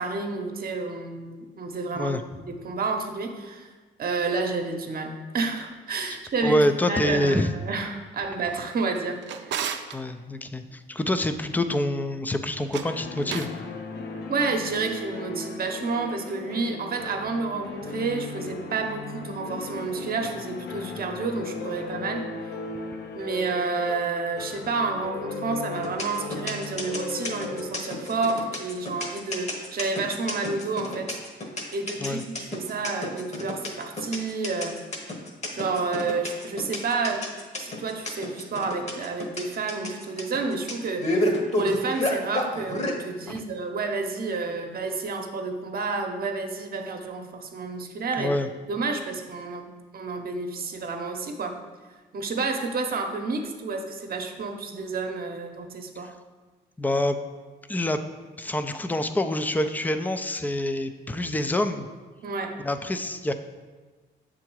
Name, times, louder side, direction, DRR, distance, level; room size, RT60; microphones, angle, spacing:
voice 1, 0.0-3.7 4.0-6.6 6.9-9.2 9.5-9.7 14.3-22.2 23.1-31.2 31.7-34.7 35.5-37.3 37.6-48.3 48.7-51.6 52.1-56.1 62.2-62.6, right 4 dB, 50° right, 4 dB, 0.8 m, -30 dB
voice 2, 6.4-7.5 9.9-13.5 32.0-32.2 48.2-48.5 56.8-57.2 57.7-58.0 58.4-61.9 62.6-63.3, left 1 dB, 10° left, 9 dB, 0.4 m, -26 dB
Drawer open or close, 8.8-10.0 12.6-13.6, right 8 dB, 65° right, 0.5 m, -34 dB
sound 1, 12.8-29.6, left 4 dB, 60° left, 0.7 m, -37 dB
sound 2, 25.8-43.0, left 1 dB, 35° left, 1.1 m, -30 dB
7.0 x 3.8 x 4.6 m, 1.3 s
cardioid pair, 90°, 20 cm